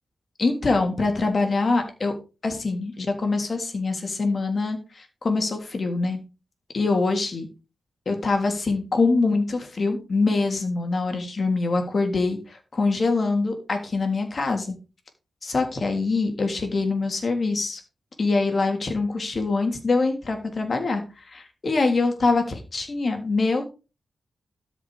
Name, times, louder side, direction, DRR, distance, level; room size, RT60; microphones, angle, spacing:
voice 1, 0.4-2.1 2.4-6.2 6.7-7.5 8.1-14.7 15.4-17.8 18.2-23.6, left 3 dB, 45° left, 4 dB, 3.4 m, -24 dB
13.0 x 6.1 x 5.0 m, 0.31 s
cardioid pair, 90°, 0 cm